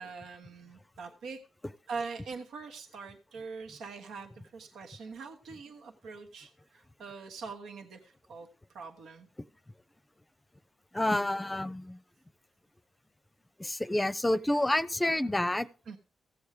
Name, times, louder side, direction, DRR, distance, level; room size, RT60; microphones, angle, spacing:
voice 1, 0.0-1.4 1.9-8.5 8.7-9.3 14.3-14.4 15.9-16.0, right 4 dB, 85° right, 1.3 m, -43 dB
voice 2, 10.9-12.0 13.6-15.7, left 1 dB, 15° left, 0.7 m, -29 dB
15.5 x 7.2 x 4.9 m
cardioid pair, 70°, 0 cm